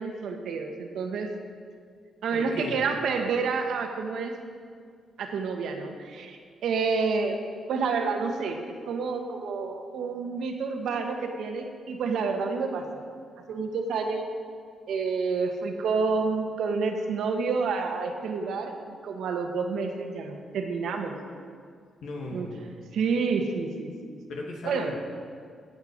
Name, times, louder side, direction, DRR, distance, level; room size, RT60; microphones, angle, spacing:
voice 1, 0.0-1.3 2.2-4.3 5.2-7.4 7.7-13.1 13.5-14.3 14.9-21.2 22.3-22.5 22.9-24.1 24.6-24.9, right 4 dB, 80° right, 4 dB, 1.4 m, -29 dB
voice 2, 2.3-2.8 22.0-22.6 24.3-24.9, left 2 dB, 80° left, 0 dB, 2.3 m, -36 dB
16.0 x 8.0 x 5.2 m, 2.1 s
cardioid pair, 80°, 0 cm